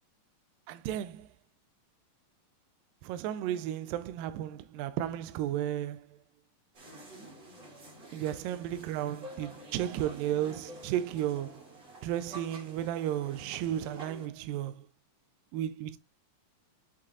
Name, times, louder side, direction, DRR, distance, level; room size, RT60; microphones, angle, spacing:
voice 1, 0.7-1.3 3.0-6.2 8.1-14.9 15.5-16.0, right 11 dB, 80° right, 2.2 m, -34 dB
sound 1, 6.7-14.3, right 1 dB, 35° right, 2.8 m, -49 dB
7.8 x 7.3 x 2.5 m
omnidirectional pair, 4.2 m